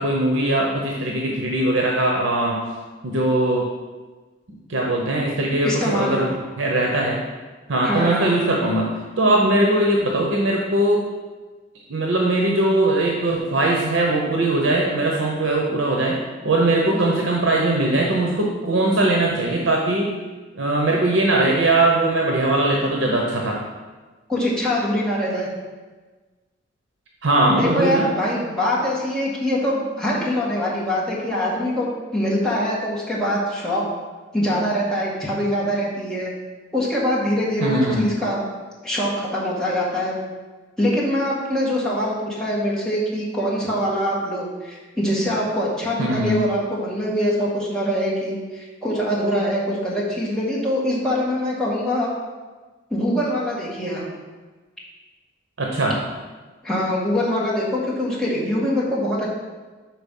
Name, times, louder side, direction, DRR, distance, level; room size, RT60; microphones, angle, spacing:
voice 1, 0.0-2.6 3.0-3.7 4.7-6.3 6.6-7.2 7.7-11.0 11.9-20.1 20.5-23.6 27.2-28.1 37.6-38.1 46.0-46.4 55.6-56.0, right 2 dB, 75° right, -1 dB, 0.8 m, -20 dB
voice 2, 5.6-6.2 7.8-8.4 24.3-25.5 27.5-33.9 34.3-36.3 36.7-38.4 38.8-40.2 40.8-52.1 52.9-54.0 56.6-59.3, equal, 5° left, -7 dB, 1.6 m, -23 dB
6.0 x 4.3 x 5.3 m, 1.3 s
head